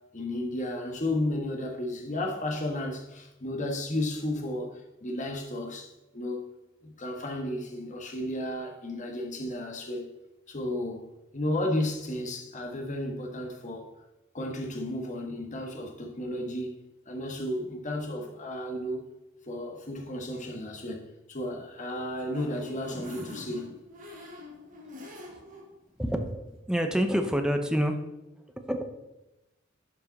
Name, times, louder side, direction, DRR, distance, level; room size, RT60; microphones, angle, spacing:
voice 1, 0.1-6.4 6.8-10.1 10.5-13.9 14.3-16.8 17.1-19.1 19.5-23.8, left 1 dB, 40° left, 1.5 m, -33 dB
sound 1, 21.7-25.6 26.1-26.2 26.5-26.6, left 2 dB, 40° right, 2.6 m, -45 dB
voice 2, 26.0-28.0 28.6-28.8, equal, 5° right, 0.8 m, -27 dB
11.5 x 5.6 x 4.1 m
head